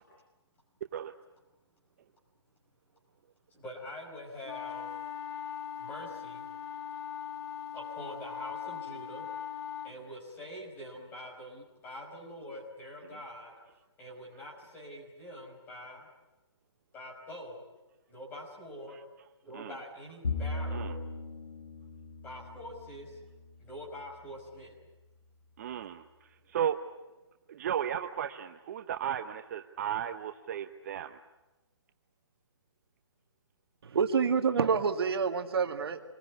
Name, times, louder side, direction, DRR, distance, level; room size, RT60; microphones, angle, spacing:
voice 1, 3.5-4.9 5.8-6.5 7.7-9.3 9.8-13.6 14.0-16.1 16.9-17.6 18.1-19.0 19.4-21.0 22.2-23.2 23.6-24.8, left 1 dB, 10° left, -1 dB, 5.5 m, -45 dB
sound 1, 4.4-9.9, left 9 dB, 60° left, 2.7 m, -40 dB
Bowed string instrument, 20.2-23.7, left 3 dB, 80° left, 7.9 m, -38 dB
voice 2, 25.6-26.8 27.5-31.2, right 9 dB, 35° right, 7 dB, 0.9 m, -35 dB
voice 3, 33.8-36.0, right 6 dB, 60° right, 6 dB, 1.8 m, -27 dB
26.5 x 21.0 x 9.7 m, 1.1 s
hypercardioid pair, 160°, 15 cm